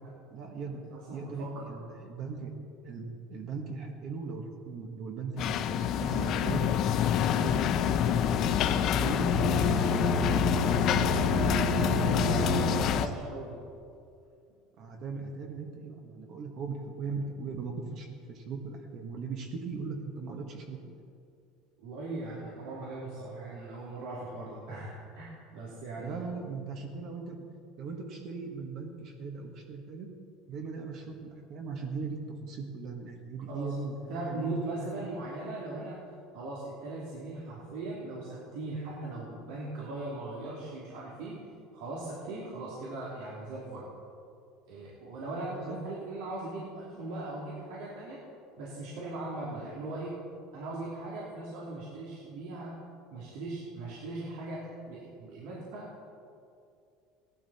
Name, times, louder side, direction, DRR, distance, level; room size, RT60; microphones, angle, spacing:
voice 1, 0.3-0.8 1.1-2.5 2.8-6.7 7.3-10.9 11.6-12.2 12.5-13.0 14.8-20.9 26.0-27.4 27.8-30.1 30.5-34.5 34.9-35.1 45.5-45.8 46.9-47.1, right 4 dB, 45° right, 2 dB, 1.5 m, -39 dB
voice 2, 0.9-1.7 11.8-13.6 21.8-26.3 33.5-33.7 34.1-36.0 36.3-41.4 41.7-43.9 44.7-48.2 48.6-50.1 50.5-52.7 53.1-55.9, right 2 dB, 80° right, -6 dB, 2.9 m, -39 dB
sound 1, 5.4-13.1, left 9 dB, 45° left, 0.6 m, -27 dB
Bowed string instrument, 9.2-13.2, right 1 dB, 5° left, 1.2 m, -31 dB
17.0 x 12.0 x 4.3 m, 2.5 s
cardioid pair, 160°, 0 cm